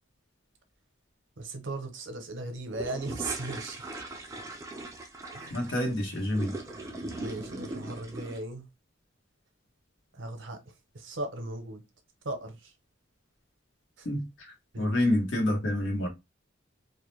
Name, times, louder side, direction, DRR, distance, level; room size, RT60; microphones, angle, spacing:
voice 1, 1.4-3.9 5.3-5.7 7.2-8.7 10.1-10.6 10.9-11.8 12.2-12.7 14.0-14.1 14.7-14.9, right 2 dB, 65° right, 0.6 m, -37 dB
sound 1, 2.7-8.4, right 2 dB, 15° right, 0.4 m, -39 dB
voice 2, 5.5-6.5 14.0-16.1, left 1 dB, 65° left, 0.9 m, -28 dB
2.2 x 2.1 x 3.0 m
head